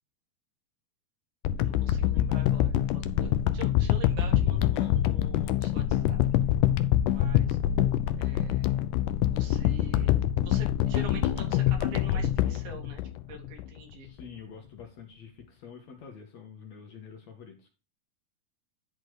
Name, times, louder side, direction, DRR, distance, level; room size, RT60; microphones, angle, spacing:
sound 1, 1.4-13.7 14.2-14.3, left 12 dB, 75° left, 1.9 m, -25 dB
voice 1, 1.6-6.2 7.0-7.6 8.2-8.8 9.3-13.0 13.3-14.1, right 3 dB, 80° right, 2 dB, 4.3 m, -45 dB
voice 2, 14.0-17.7, left 6 dB, 60° left, 4 dB, 2.1 m, -47 dB
11.5 x 4.3 x 4.7 m, 0.31 s
omnidirectional pair, 4.3 m